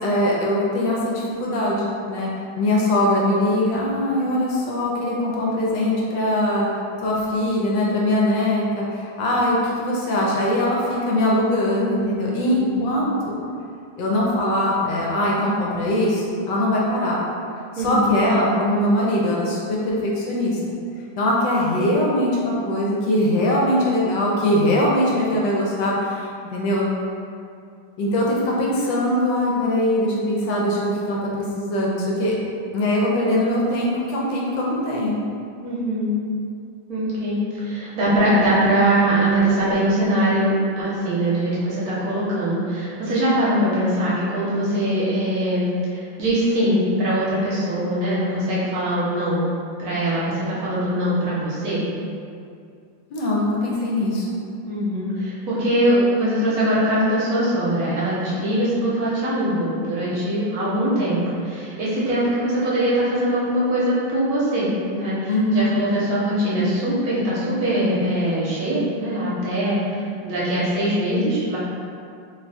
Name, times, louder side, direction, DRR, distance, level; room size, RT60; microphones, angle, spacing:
voice 1, 0.0-2.3 2.6-13.1 14.0-17.2 17.7-20.6 21.2-26.9 28.0-31.2 31.6-32.3 32.7-35.2 53.1-54.4 65.3-65.7, left 1 dB, 80° left, -4 dB, 1.3 m, -21 dB
voice 2, 17.7-18.1 35.6-36.2 36.9-49.4 49.8-51.8 54.6-71.6, right 1 dB, 60° right, -9 dB, 1.2 m, -22 dB
3.2 x 2.3 x 4.0 m, 2.4 s
omnidirectional pair, 2.0 m